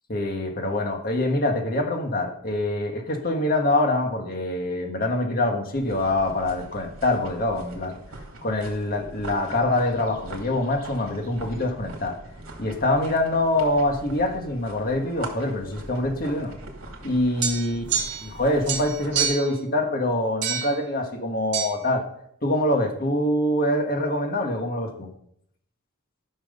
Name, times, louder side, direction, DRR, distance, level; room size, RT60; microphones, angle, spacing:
voice 1, 0.1-8.0 8.4-12.1 12.6-16.5 17.0-17.8 18.2-22.0 22.4-25.1, left 1 dB, 45° left, 3 dB, 1.8 m, -25 dB
sound 1, 5.7-19.3, right 2 dB, 80° right, 2.5 m, -42 dB
sound 2, 17.4-18.4 18.7-19.6 20.4-20.8 21.5-21.7, right 7 dB, 55° right, 2.8 m, -27 dB
13.5 x 6.3 x 5.5 m, 0.72 s
head